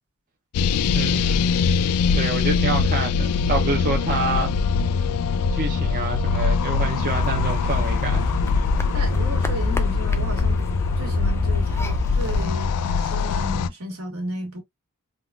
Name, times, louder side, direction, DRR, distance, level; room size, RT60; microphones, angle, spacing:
sound 1, 0.5-13.7, left 5 dB, 85° left, 0.3 m, -22 dB
voice 1, 0.9-1.7 2.1-4.5 5.5-8.3, right 3 dB, 40° right, 0.6 m, -27 dB
sound 2, 6.9-12.5, left 2 dB, 10° left, 0.4 m, -27 dB
voice 2, 8.8-10.6 10.9-14.6, equal, 70° right, 1.5 m, -34 dB
3.5 x 2.3 x 2.3 m
head